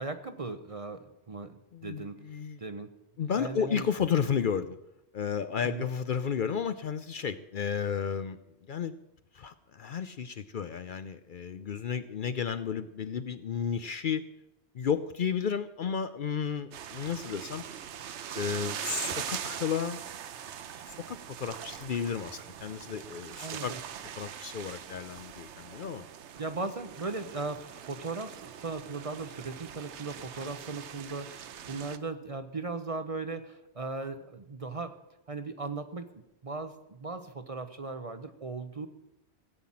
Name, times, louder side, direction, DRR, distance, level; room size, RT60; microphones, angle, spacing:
voice 1, 0.0-2.3 2.6-2.9 3.3-3.9 5.6-5.9 23.4-23.8 26.4-34.9 35.3-38.9, right 3 dB, 35° right, 9 dB, 0.8 m, -38 dB
voice 2, 1.7-2.6 3.2-4.8 5.1-8.4 8.7-8.9 9.3-14.2 14.7-17.6 18.3-20.0 20.9-23.7 24.2-26.0, left 7 dB, 55° left, 11 dB, 0.7 m, -32 dB
sound 1, 16.7-32.0, right 9 dB, 90° right, 1.0 m, -42 dB
17.0 x 5.9 x 8.6 m, 0.89 s
omnidirectional pair, 1.1 m